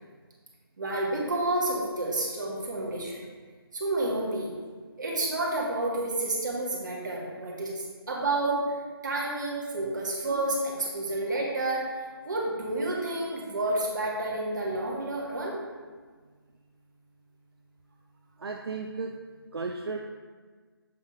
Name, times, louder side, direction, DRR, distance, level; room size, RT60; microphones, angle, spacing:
voice 1, 0.8-3.2 3.7-4.5 5.0-8.6 9.0-11.9 12.2-15.6, right 2 dB, 50° right, -3 dB, 1.7 m, -30 dB
voice 2, 18.4-19.2 19.5-20.0, right 4 dB, 75° right, 2 dB, 0.6 m, -34 dB
7.6 x 3.6 x 4.8 m, 1.5 s
figure-of-eight pair, 165°, 13 cm